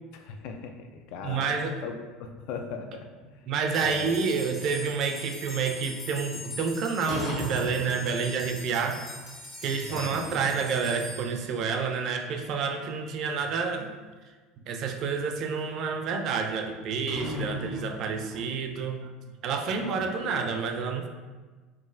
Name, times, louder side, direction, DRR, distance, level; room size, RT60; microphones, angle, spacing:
voice 1, 0.1-1.5 1.8-3.1 3.3-3.5 3.7-4.2 9.9-10.4 19.7-20.6, left 5 dB, 65° left, 5 dB, 0.3 m, -39 dB
voice 2, 1.2-1.8 3.5-9.0 9.6-13.9 14.7-19.0 19.4-21.1, right 5 dB, 50° right, 5 dB, 0.3 m, -29 dB
sound 1, 3.2-4.5 7.1-8.7 9.0-9.1 9.6-10.6 10.9-11.0 11.5-11.6 12.0-13.4 14.9-15.0 16.8-18.6, left 1 dB, 45° left, 0.9 m, -36 dB
sound 2, 3.7-12.2, left 2 dB, 20° left, 0.7 m, -43 dB
3.1 x 2.3 x 2.4 m, 1.3 s
supercardioid pair, 130°, 0 cm